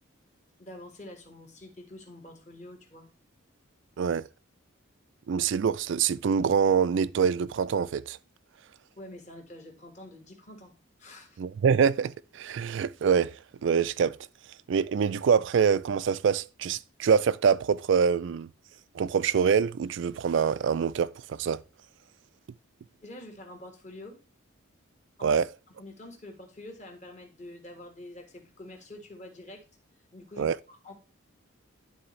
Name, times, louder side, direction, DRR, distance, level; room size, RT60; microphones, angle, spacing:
voice 1, 0.6-3.1 9.0-10.7 11.0-11.4 23.0-24.2 25.2-25.3 25.8-29.6 30.1-30.9, left 1 dB, 35° left, 1.6 m, -46 dB
voice 2, 4.0-4.3 5.3-8.2 11.4-13.3 13.6-14.2 14.7-18.5 18.9-21.6 25.2-25.5 30.4-30.5, right 6 dB, 60° right, 0.3 m, -25 dB
11.0 x 3.9 x 3.2 m
head